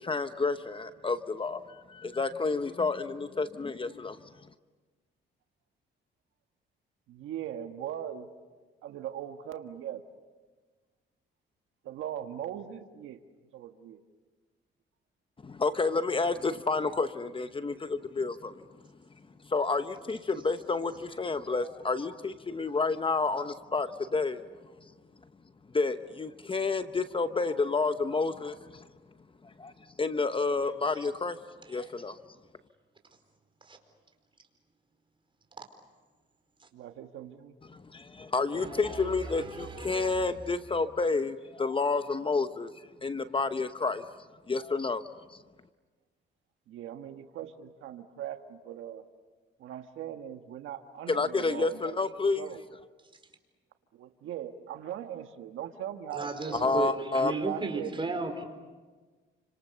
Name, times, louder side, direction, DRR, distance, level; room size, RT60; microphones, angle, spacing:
voice 1, 0.0-4.2 15.4-18.5 19.4-24.4 25.7-28.9 29.6-29.7 30.0-31.4 31.7-32.2 37.7-42.7 43.0-44.0 44.5-45.1 51.1-52.5 56.5-57.3, left 3 dB, 25° left, 10 dB, 0.9 m, -30 dB
voice 2, 7.1-8.3 8.8-10.0 11.8-13.2 13.5-14.0 36.7-37.5 46.7-49.0 49.6-52.0 52.4-52.6 53.9-56.8 57.4-57.9, right 10 dB, 85° right, 7 dB, 1.4 m, -40 dB
voice 3, 38.5-40.3 56.1-58.4, right 3 dB, 25° right, 5 dB, 4.7 m, -35 dB
29.5 x 26.0 x 6.9 m, 1.3 s
cardioid pair, 90°, 20 cm